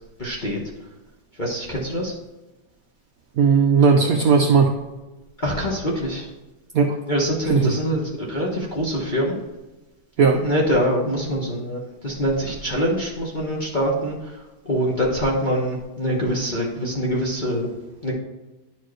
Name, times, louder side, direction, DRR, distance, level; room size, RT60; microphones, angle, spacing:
voice 1, 0.2-0.6 1.4-2.1 5.4-6.3 7.1-9.4 10.4-14.4 14.6-17.7 18.0-18.1, equal, 35° left, -4 dB, 0.8 m, -24 dB
voice 2, 3.4-4.7 6.7-7.0 7.5-7.7 10.2-10.4, right 5 dB, 70° right, 3 dB, 0.8 m, -16 dB
11.0 x 4.4 x 3.1 m, 1.1 s
omnidirectional pair, 2.2 m